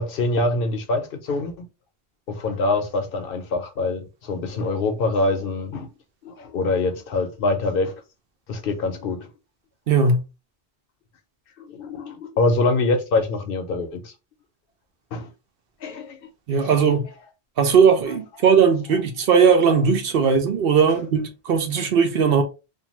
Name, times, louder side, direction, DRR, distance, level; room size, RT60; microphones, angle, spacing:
voice 1, 0.0-1.7 2.3-5.9 6.2-7.9 8.5-9.3 11.6-14.1 15.1-15.3 15.8-16.3 20.9-21.0, left 2 dB, 65° left, 0.7 m, -24 dB
voice 2, 9.9-10.2 16.5-17.0 17.6-22.4, right 6 dB, 65° right, 0.8 m, -18 dB
2.6 x 2.2 x 2.9 m
omnidirectional pair, 1.1 m